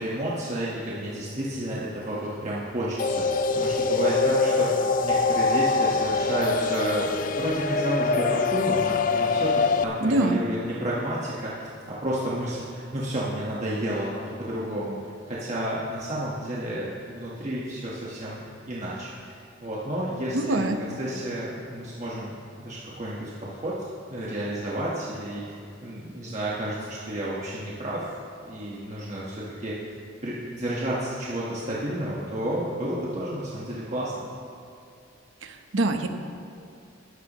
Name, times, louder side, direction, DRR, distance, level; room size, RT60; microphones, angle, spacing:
voice 1, 0.0-20.6 21.0-28.1 28.4-29.8 30.2-34.1, right 1 dB, 35° right, -7 dB, 1.4 m, -31 dB
sound 1, 3.0-9.8, left 4 dB, 45° left, 0.4 m, -24 dB
voice 2, 10.0-10.4 20.3-20.8 35.4-36.1, right 2 dB, 75° right, 6 dB, 0.9 m, -24 dB
14.5 x 12.5 x 3.0 m, 2.6 s
head